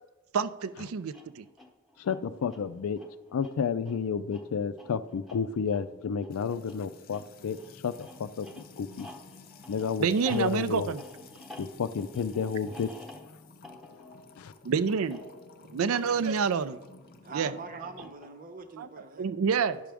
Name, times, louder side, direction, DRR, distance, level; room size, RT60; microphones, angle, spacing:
voice 1, 0.3-1.4 10.0-11.0 14.6-15.2 15.7-16.8 17.3-17.5 18.8-18.9 19.2-19.8, right 6 dB, 80° right, 15 dB, 0.4 m, -27 dB
sound 1, 1.0-16.8 17.8-18.7, left 2 dB, ahead, 0.8 m, -51 dB
voice 2, 2.0-3.0 3.3-9.1 9.7-10.9 11.6-12.9 14.4-14.5, left 6 dB, 90° left, 14 dB, 0.4 m, -31 dB
Music / Water tap faucet / Trickle dribble, 6.3-18.1, left 4 dB, 45° left, 0.6 m, -53 dB
voice 3, 17.2-19.4, right 4 dB, 40° right, 7 dB, 0.8 m, -43 dB
11.0 x 6.1 x 3.5 m, 1.1 s
head